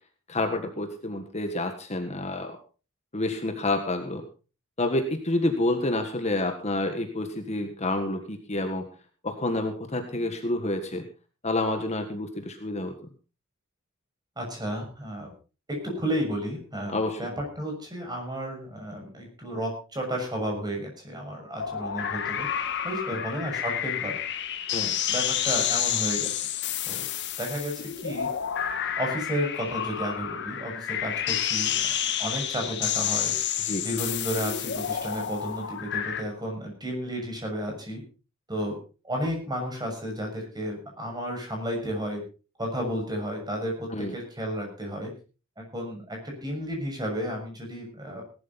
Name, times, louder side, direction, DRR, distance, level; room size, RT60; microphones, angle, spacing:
voice 1, 0.3-2.6 3.1-4.2 4.8-8.9 9.2-11.1 11.4-12.9 16.9-17.2 24.7-24.9 33.6-33.8 43.9-44.1, left 2 dB, 30° left, 5 dB, 1.6 m, -28 dB
voice 2, 14.4-15.3 15.7-22.5 22.8-24.2 24.8-26.5 26.8-27.1 27.4-28.3 29.0-31.9 32.2-33.3 33.8-38.0 38.5-38.8 39.0-42.2 42.6-45.1 45.6-48.2, equal, 20° right, 1 dB, 6.6 m, -32 dB
sound 1, 21.6-36.2, left 9 dB, 55° left, 1.6 m, -29 dB
18.0 x 12.5 x 4.2 m, 0.35 s
head